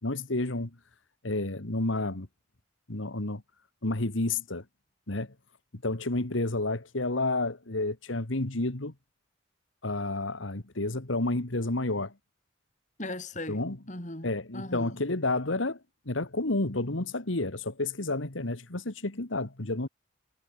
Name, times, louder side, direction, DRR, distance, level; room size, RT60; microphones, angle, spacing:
voice 1, 0.0-0.8 1.2-2.3 2.9-3.4 3.8-4.6 5.1-5.3 5.7-8.9 9.8-12.1 13.5-13.8 14.2-15.8 16.1-19.9, left 2 dB, 85° left, 2.0 m, -30 dB
voice 2, 13.0-13.6 13.9-15.0, left 2 dB, 40° left, 3.5 m, -38 dB
head